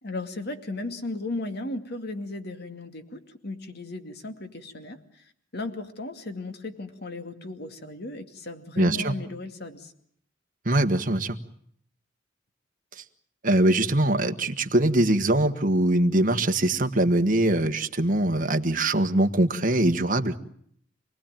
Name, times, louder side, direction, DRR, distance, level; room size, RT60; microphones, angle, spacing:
voice 1, 0.0-9.9, left 2 dB, 55° left, 7 dB, 2.4 m, -36 dB
voice 2, 8.8-9.1 10.6-11.4 13.0-13.1 13.4-20.3, right 1 dB, 45° right, 7 dB, 1.5 m, -22 dB
27.5 x 19.5 x 9.0 m, 0.67 s
head